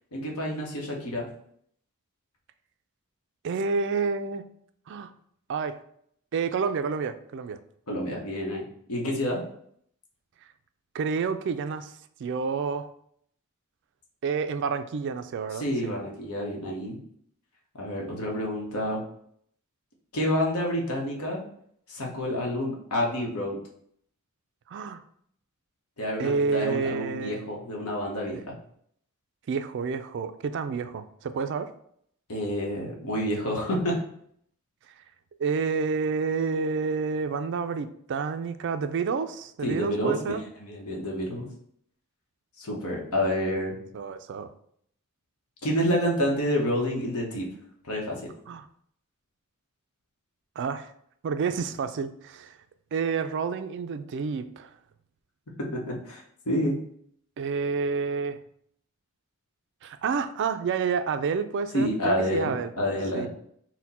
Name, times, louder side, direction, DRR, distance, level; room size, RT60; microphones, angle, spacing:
voice 1, 0.1-1.3 7.9-8.6 8.9-9.4 15.6-17.0 17.8-19.0 20.1-21.4 21.9-23.6 26.0-28.6 32.3-34.0 39.6-40.3 40.6-41.4 42.6-43.7 45.6-47.5 47.8-48.3 55.6-56.7 61.7-63.3, equal, 75° left, -1 dB, 1.0 m, -28 dB
voice 2, 3.4-4.4 4.9-5.1 5.5-5.8 6.3-7.6 10.9-11.9 12.2-12.9 14.2-15.9 24.7-25.0 26.2-27.4 28.3-28.4 29.5-31.7 35.4-40.4 43.9-44.5 48.5-48.7 50.6-50.9 51.2-52.6 52.9-54.7 57.4-58.4 59.8-62.7 63.1-63.3, right 5 dB, 55° right, 10 dB, 0.3 m, -29 dB
4.2 x 2.1 x 4.1 m, 0.67 s
head